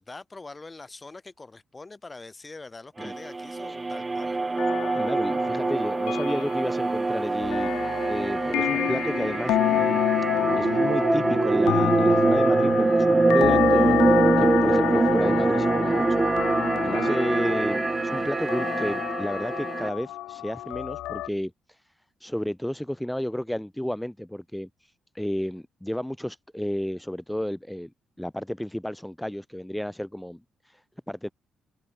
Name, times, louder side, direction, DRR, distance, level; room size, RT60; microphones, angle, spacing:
voice 1, 0.0-4.4, left 3 dB, 25° left, 6.4 m, -43 dB
sound 1, 3.0-19.9, right 3 dB, 20° right, 0.3 m, -24 dB
sound 2, 4.6-21.3, left 15 dB, 90° left, 0.8 m, -29 dB
voice 2, 4.9-7.7 8.1-10.0 10.5-16.3 16.8-21.8 22.2-27.9 28.2-31.3, equal, 5° left, 3.0 m, -32 dB
open air
cardioid pair, 90°, 0 cm